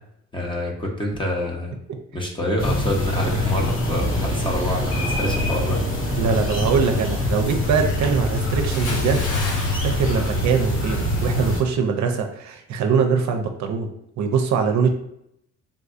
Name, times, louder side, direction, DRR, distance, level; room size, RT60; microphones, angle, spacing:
voice 1, 0.3-1.7 2.1-5.8, left 1 dB, 15° left, 0 dB, 0.8 m, -26 dB
sound 1, 2.6-11.6, left 1 dB, 45° left, 1.0 m, -24 dB
sound 2, 3.2-8.2, right 3 dB, 15° right, 0.6 m, -35 dB
voice 2, 6.2-9.2 9.8-13.9 14.2-14.9, right 6 dB, 70° right, 4 dB, 0.5 m, -22 dB
Bathtub (filling or washing) / Splash splatter, 8.7-11.1 11.4-11.7, left 3 dB, 80° left, 0.9 m, -33 dB
3.6 x 2.6 x 2.4 m, 0.78 s
cardioid pair, 90°, 30 cm